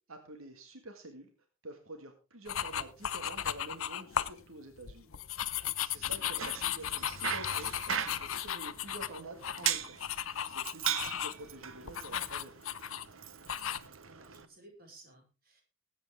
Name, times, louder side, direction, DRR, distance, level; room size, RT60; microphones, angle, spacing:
voice 1, 0.1-1.3 1.6-5.1 5.4-10.0 10.5-12.5, right 2 dB, 90° right, 5 dB, 1.8 m, -48 dB
sound 1, 2.5-4.4 4.8-11.5 11.8-13.1 13.5-13.8, left 10 dB, 80° left, 0.7 m, -36 dB
voice 2, 6.0-6.6 13.5-15.6, right 1 dB, 50° right, 1 dB, 4.9 m, -58 dB
Bicycle, 6.1-14.5, right 8 dB, 75° right, 1.1 m, -39 dB
20.5 x 8.6 x 3.5 m, 0.31 s
head